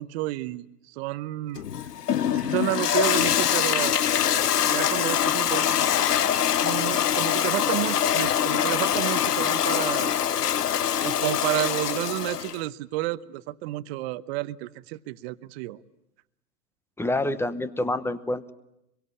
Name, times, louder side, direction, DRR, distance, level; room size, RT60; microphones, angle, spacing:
voice 1, 0.0-1.6 2.3-4.0 4.7-6.0 6.6-10.2 11.0-15.8, right 18 dB, 45° right, 15 dB, 1.1 m, -30 dB
Toilet flush, 1.6-12.6, left 9 dB, 90° left, 1.0 m, -24 dB
voice 2, 17.0-18.5, left 1 dB, 5° left, 14 dB, 1.0 m, -27 dB
26.0 x 23.0 x 9.8 m, 0.82 s
hypercardioid pair, 120°, 46 cm